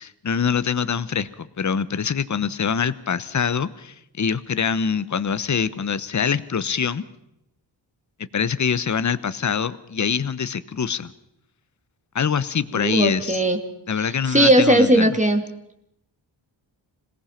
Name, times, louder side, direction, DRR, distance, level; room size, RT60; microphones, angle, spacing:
voice 1, 0.0-7.0 8.3-11.1 12.1-13.4 13.9-15.1, left 6 dB, 40° left, 14 dB, 1.0 m, -24 dB
voice 2, 12.7-13.6 14.0-15.4, right 1 dB, 15° right, 5 dB, 2.5 m, -18 dB
26.5 x 18.5 x 5.8 m, 0.79 s
wide cardioid pair, 85°, 46 cm